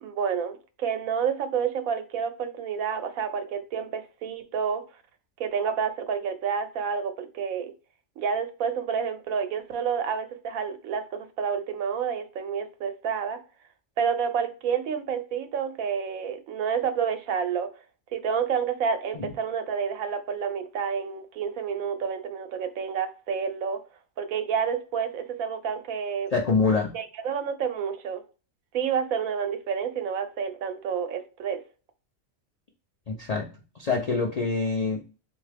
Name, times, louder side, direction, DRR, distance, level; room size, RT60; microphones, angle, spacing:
voice 1, 0.0-4.8 5.4-7.7 8.2-13.4 14.0-17.7 18.1-23.8 24.2-26.3 26.9-28.2 28.7-31.6, right 7 dB, 90° right, 1.1 m, -29 dB
voice 2, 26.3-26.9 33.1-33.5 33.7-35.0, left 4 dB, 65° left, 0.3 m, -25 dB
3.6 x 2.6 x 3.3 m
omnidirectional pair, 1.4 m